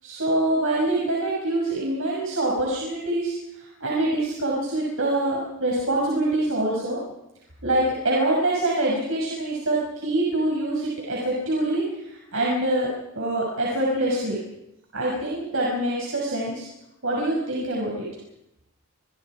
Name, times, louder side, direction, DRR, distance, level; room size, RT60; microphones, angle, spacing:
voice 1, 0.0-7.0 7.6-12.9 13.1-14.4 14.9-16.7 17.0-18.1, right 1 dB, 70° right, -3 dB, 6.4 m, -25 dB
27.5 x 25.0 x 4.9 m, 0.87 s
head